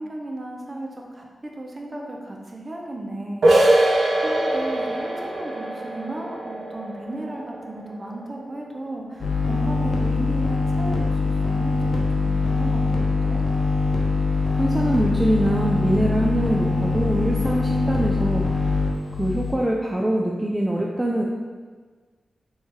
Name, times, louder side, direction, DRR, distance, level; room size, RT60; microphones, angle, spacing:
voice 1, 0.0-3.7 4.2-13.4, right 1 dB, 35° right, 0 dB, 0.8 m, -35 dB
sound 1, 3.4-8.9, right 1 dB, 75° right, 0.7 m, -23 dB
sound 2, 9.2-19.5, left 3 dB, 60° left, 0.8 m, -23 dB
voice 2, 14.5-18.7 19.1-21.2, right 1 dB, 15° right, -1 dB, 0.4 m, -23 dB
3.2 x 3.2 x 4.6 m, 1.5 s
cardioid pair, 65°, 0 cm